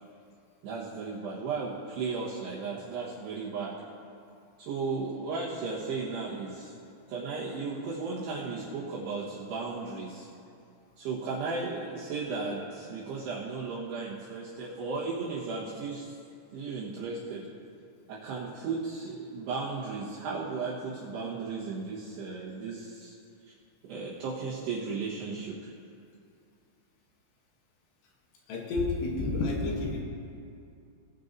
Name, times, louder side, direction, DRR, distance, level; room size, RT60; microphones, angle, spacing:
voice 1, 0.6-3.7 4.6-6.7 7.1-10.3 11.0-16.1 16.5-17.4 18.1-23.1 23.5-23.6 23.8-25.7, right 4 dB, 70° right, -9 dB, 3.0 m, -35 dB
voice 2, 28.5-30.0, left 2 dB, 70° left, -1 dB, 2.9 m, -30 dB
19.0 x 10.0 x 2.7 m, 2.5 s
omnidirectional pair, 5.9 m